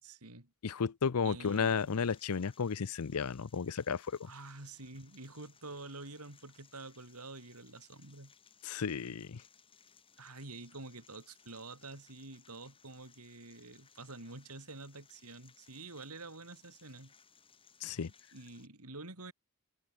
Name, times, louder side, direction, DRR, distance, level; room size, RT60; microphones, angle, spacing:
voice 1, 0.0-0.5 1.2-2.1 4.3-8.3 10.2-17.1 17.8-17.9 18.3-19.3, right 3 dB, 90° right, 4.2 m, -48 dB
voice 2, 0.6-4.3 8.6-9.4 17.8-18.1, left 6 dB, 90° left, 0.6 m, -33 dB
sound 1, 1.4-18.7, left 6 dB, 25° left, 5.6 m, -64 dB
head